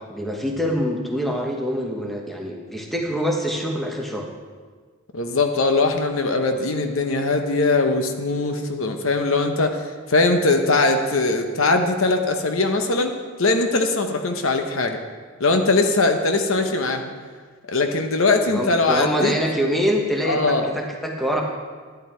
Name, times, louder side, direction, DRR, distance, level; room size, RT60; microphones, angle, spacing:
voice 1, 0.0-4.3 18.4-21.4, equal, ahead, 0 dB, 1.1 m, -25 dB
voice 2, 5.1-15.0 15.4-17.1 17.7-19.3 20.2-20.7, left 3 dB, 75° left, 5 dB, 0.9 m, -21 dB
11.0 x 10.5 x 4.5 m, 1.5 s
head